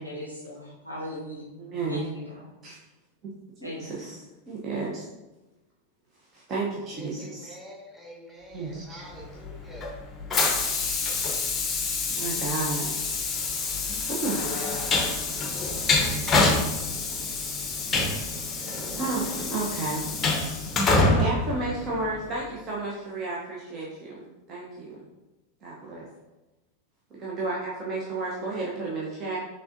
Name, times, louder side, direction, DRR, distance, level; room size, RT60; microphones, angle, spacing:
voice 1, 0.0-1.4 1.9-2.5 3.6-4.0, equal, 90° right, -8 dB, 1.5 m, -38 dB
voice 2, 1.6-2.1 2.6-2.8 3.2-3.3 3.6-4.2 4.5-5.1 6.3-7.5 8.5-9.0 12.1-12.9 14.1-14.6 15.3-15.4 18.1-18.3 18.8-20.0 21.2-25.1 25.6-26.0 27.2-29.4, right 3 dB, 30° right, -5 dB, 0.8 m, -32 dB
voice 3, 6.9-10.0 14.2-15.0, equal, 5° right, -4 dB, 1.5 m, -45 dB
Train, 9.2-22.3, left 3 dB, 20° left, 0.7 m, -27 dB
5.9 x 3.4 x 2.6 m, 1.1 s
figure-of-eight pair, 90°, 0 cm